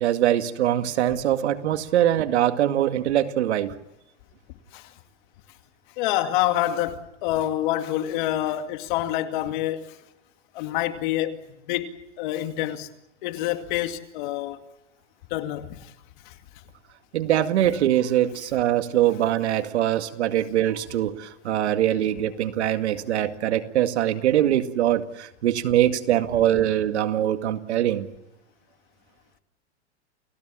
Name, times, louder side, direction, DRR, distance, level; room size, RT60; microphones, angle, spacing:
voice 1, 0.0-3.8 17.1-28.1, right 12 dB, 70° right, 2.2 m, -23 dB
voice 2, 6.0-9.9 10.5-11.4 11.7-11.9 12.2-12.9 13.2-14.6 15.3-15.9 16.3-16.4, left 13 dB, 45° left, 2.3 m, -27 dB
29.5 x 17.5 x 7.5 m
supercardioid pair, 160°, 35 cm